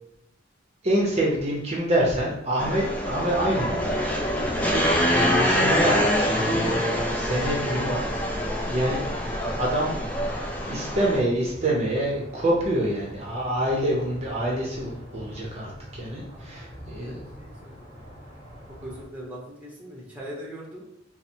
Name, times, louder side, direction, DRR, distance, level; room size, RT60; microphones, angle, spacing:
voice 1, 0.8-3.9 4.7-8.4 8.7-9.0 9.6-10.0 10.7-17.2, right 1 dB, 35° right, -3 dB, 0.7 m, -26 dB
sound 1, 2.6-11.2, equal, 10° left, 0.5 m, -25 dB
sound 2, 3.3-19.1, equal, 25° left, 1.1 m, -44 dB
voice 2, 16.3-17.9 18.2-18.3 18.8-20.9, equal, 10° right, -3 dB, 0.9 m, -41 dB
4.0 x 2.0 x 4.3 m, 0.83 s
head